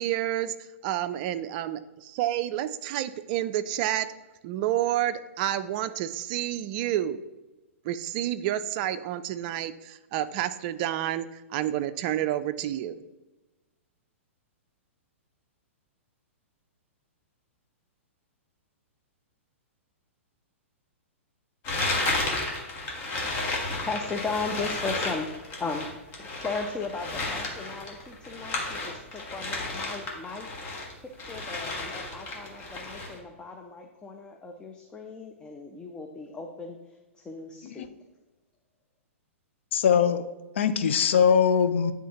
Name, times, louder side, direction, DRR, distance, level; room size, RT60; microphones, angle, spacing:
voice 1, 0.0-4.1 4.4-7.2 7.8-13.0, right 12 dB, 40° right, 12 dB, 0.4 m, -29 dB
sound 1, 21.6-30.9 31.2-33.2, left 2 dB, 35° left, 1.4 m, -32 dB
voice 2, 23.7-25.9 26.2-30.5 31.0-37.9, left 4 dB, 10° left, 2 dB, 0.5 m, -36 dB
voice 3, 39.7-40.2 40.6-41.9, left 7 dB, 60° left, 11 dB, 0.5 m, -21 dB
10.0 x 3.5 x 2.9 m, 1.1 s
figure-of-eight pair, 110°, 7 cm